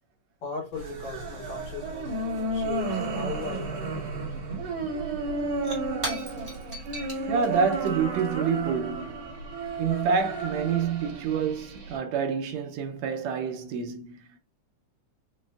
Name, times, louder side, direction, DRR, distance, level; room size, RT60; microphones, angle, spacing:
voice 1, 0.4-2.1 2.5-4.2, left 4 dB, 70° left, 2.4 m, -38 dB
sound 1, 0.7-12.0, right 3 dB, 60° right, 3.0 m, -32 dB
Shatter / Crushing, 5.4-9.9, right 1 dB, 25° right, 1.4 m, -40 dB
voice 2, 7.3-9.2 9.8-14.4, right 6 dB, 75° right, 1.7 m, -28 dB
6.1 x 2.4 x 2.3 m
omnidirectional pair, 3.3 m